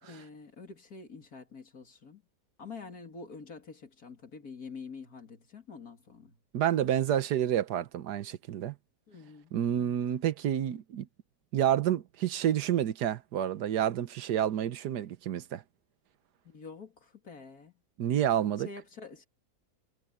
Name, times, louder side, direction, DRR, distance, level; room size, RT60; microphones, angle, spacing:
voice 1, 0.0-2.2 2.6-6.4 9.1-10.0 16.4-17.7 18.6-19.3, left 4 dB, 65° left, 3.2 m, -47 dB
voice 2, 6.5-8.7 9.5-11.1 11.5-15.6 18.0-18.7, right 10 dB, 80° right, 1.5 m, -29 dB
omnidirectional pair, 1.7 m